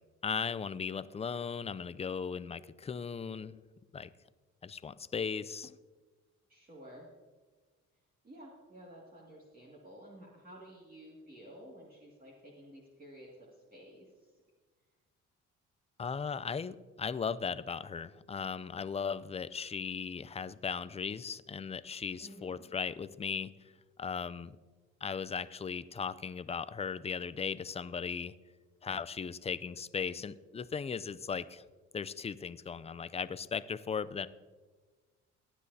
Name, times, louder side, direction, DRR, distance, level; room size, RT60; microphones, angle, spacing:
voice 1, 0.2-3.6 3.9-4.1 4.6-5.8 16.0-23.5 24.0-24.6 25.0-28.3 28.8-31.6 31.9-34.3, left 6 dB, 20° left, 15 dB, 0.4 m, -37 dB
voice 2, 6.5-7.1 8.2-14.3 22.2-22.6, equal, 30° right, -4 dB, 2.3 m, -52 dB
18.0 x 9.9 x 2.8 m, 1.3 s
cardioid pair, 90°, 30 cm